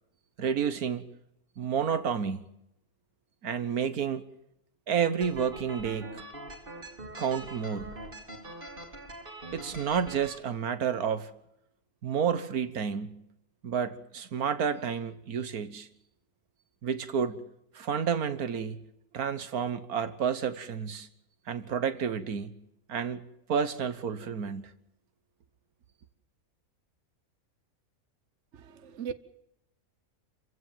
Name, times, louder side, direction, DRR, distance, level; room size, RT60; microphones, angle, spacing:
voice 1, 0.4-1.1 1.6-2.5 3.4-4.2 4.9-6.2 7.2-8.0 9.5-11.3 12.0-13.2 13.6-15.9 16.8-17.4 17.7-18.8 19.1-21.1 21.5-22.5 22.9-23.2 23.5-24.7, right 7 dB, 80° right, 1.7 m, -30 dB
sound 1, 5.2-10.4, right 1 dB, 35° right, 2.8 m, -44 dB
voice 2, 28.5-29.1, right 7 dB, 55° right, 1.4 m, -38 dB
28.0 x 16.0 x 7.5 m
omnidirectional pair, 1.5 m